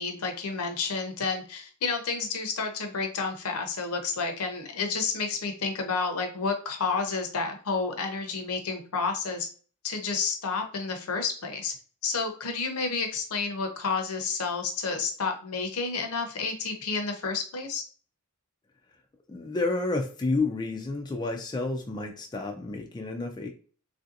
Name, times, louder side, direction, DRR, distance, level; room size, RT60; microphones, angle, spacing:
voice 1, 0.0-9.5 9.8-11.7 12.0-17.8, left 4 dB, 75° left, 5 dB, 0.7 m, -30 dB
voice 2, 19.3-23.5, left 3 dB, 20° left, 3 dB, 0.3 m, -30 dB
3.2 x 2.6 x 2.5 m, 0.40 s
head